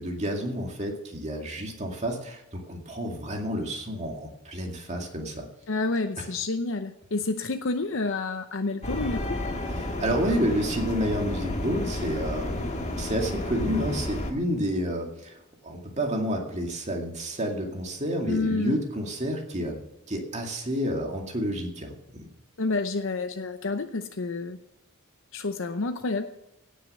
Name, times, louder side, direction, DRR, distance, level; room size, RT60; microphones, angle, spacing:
voice 1, 0.0-5.5 6.2-6.3 9.7-19.8 20.1-22.3, equal, 35° right, 1 dB, 2.2 m, -30 dB
voice 2, 5.7-9.4 18.3-18.8 22.6-24.6 25.3-26.3, left 3 dB, 60° left, 7 dB, 0.7 m, -29 dB
sound 1, 8.8-14.3, left 1 dB, 30° left, 1.8 m, -31 dB
17.0 x 6.6 x 6.7 m, 0.89 s
head